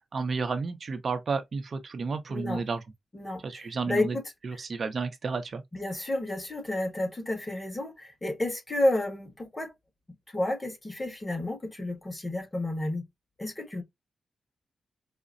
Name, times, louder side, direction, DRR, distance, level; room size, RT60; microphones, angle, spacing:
voice 1, 0.1-2.8 3.4-4.2 4.4-5.6, right 4 dB, 55° right, 0.6 m, -31 dB
voice 2, 2.3-2.6 3.1-4.2 5.7-9.7 10.3-13.1 13.4-13.8, left 1 dB, 20° left, 1.3 m, -31 dB
4.9 x 2.1 x 2.4 m
cardioid pair, 100°, 0 cm